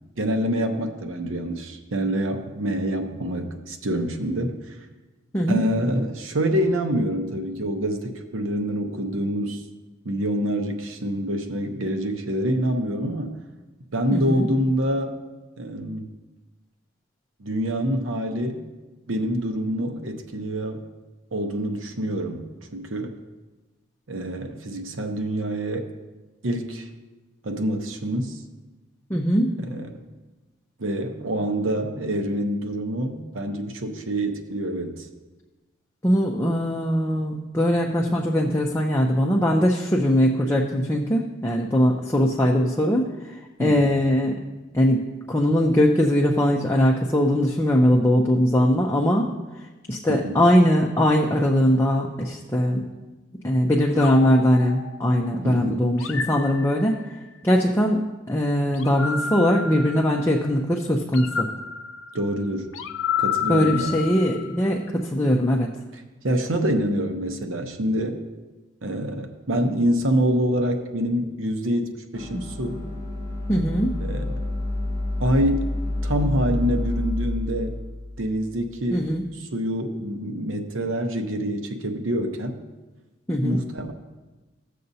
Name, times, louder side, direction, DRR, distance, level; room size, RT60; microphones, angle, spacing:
voice 1, 0.2-4.8 5.5-9.6 10.0-13.4 13.9-15.1 15.6-16.1 17.4-18.6 19.1-20.8 21.3-22.4 22.7-23.1 24.1-25.9 26.4-26.9 27.4-28.4 29.6-30.0 30.8-35.1 43.6-43.9 50.1-50.4 55.4-55.9 62.1-62.7 63.2-63.9 65.9-68.2 68.8-72.9 74.0-74.4 75.2-75.7 76.0-77.7 78.2-82.6 83.4-83.9, equal, 80° right, 5 dB, 0.9 m, -26 dB
voice 2, 14.1-14.5 29.1-29.5 36.0-43.1 43.6-44.4 44.7-49.3 49.9-52.8 53.4-56.9 57.4-61.5 63.5-65.7 72.3-72.4 73.5-73.9 78.9-79.2 83.3-83.6, equal, 15° left, -1 dB, 0.5 m, -21 dB
sound 1, 54.0-55.3 56.0-57.3 58.7-60.5 61.1-64.6, left 7 dB, 80° left, 0.6 m, -31 dB
sound 2, 72.1-79.2, left 1 dB, 55° right, 1.8 m, -29 dB
15.5 x 6.6 x 2.7 m, 1.2 s
head